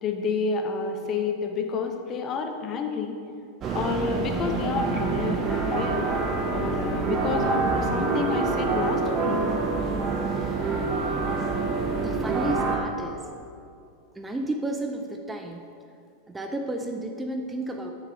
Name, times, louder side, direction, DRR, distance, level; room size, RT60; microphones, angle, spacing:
voice 1, 0.0-3.2 3.7-6.1 6.5-9.4, left 5 dB, 30° left, 4 dB, 0.9 m, -29 dB
sound 1, 3.6-12.8, right 4 dB, 30° right, 1.1 m, -26 dB
voice 2, 12.0-13.3 14.1-15.6 16.3-17.9, right 1 dB, 10° right, 4 dB, 0.5 m, -32 dB
6.8 x 5.8 x 6.0 m, 2.4 s
figure-of-eight pair, 90°, 0 cm